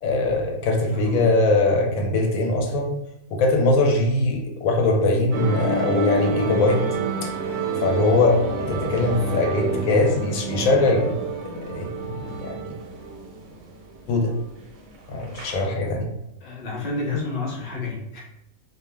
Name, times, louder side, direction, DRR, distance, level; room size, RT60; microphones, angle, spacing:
voice 1, 0.0-3.0 3.3-6.8 7.2-7.3 7.8-11.1 11.7-12.7 14.1-14.3 15.1-16.1, left 2 dB, 85° left, 1 dB, 1.0 m, -21 dB
voice 2, 0.9-1.3 16.4-18.2, left 3 dB, 35° left, -4 dB, 0.8 m, -30 dB
sound 1, 5.3-15.6, right 3 dB, 80° right, 1.0 m, -28 dB
2.4 x 2.1 x 3.2 m, 0.86 s
omnidirectional pair, 1.4 m